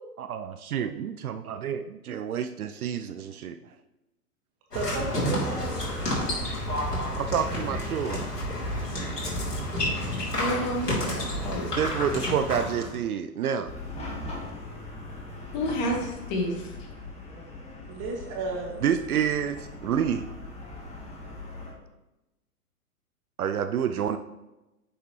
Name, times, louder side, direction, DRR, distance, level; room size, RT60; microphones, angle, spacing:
voice 1, 0.2-3.6 7.2-8.2 11.8-13.7 18.8-20.3 23.4-24.2, right 8 dB, 70° right, 9 dB, 0.6 m, -28 dB
sound 1, 4.7-13.0, left 1 dB, 90° left, 3.2 m, -30 dB
voice 2, 4.7-5.9 17.9-18.8, right 3 dB, 30° right, 0 dB, 2.3 m, -33 dB
voice 3, 10.4-11.7 15.5-16.7, equal, 35° left, 2 dB, 1.7 m, -30 dB
Chatter / Car passing by / Traffic noise roadway noise, 13.6-21.7, left 2 dB, 15° left, 1.6 m, -40 dB
10.5 x 6.6 x 3.1 m, 1.0 s
figure-of-eight pair, 115°, 46 cm